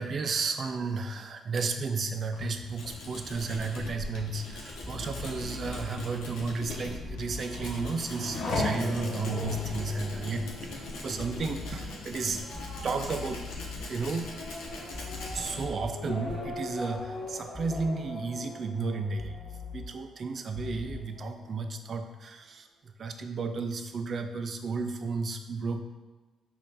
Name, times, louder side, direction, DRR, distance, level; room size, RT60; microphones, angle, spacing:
voice 1, 0.0-12.4 12.8-13.5 13.9-14.3 15.3-19.4 19.7-25.8, right 4 dB, 50° right, 7 dB, 0.4 m, -33 dB
Tools, 2.1-17.5, left 2 dB, 90° left, 0.8 m, -42 dB
sound 1, 4.8-5.8 6.9-7.9 9.5-9.9 11.2-11.8 12.6-13.8 14.9-15.9 17.5-17.9 19.2-19.8 20.6-20.9, left 5 dB, 15° left, 0.5 m, -41 dB
Race car auto racing / Accelerating revving vroom, 7.0-20.2 20.6-21.3, left 2 dB, 70° left, 1.0 m, -39 dB
5.1 x 2.5 x 4.2 m, 1.3 s
cardioid pair, 90°, 0 cm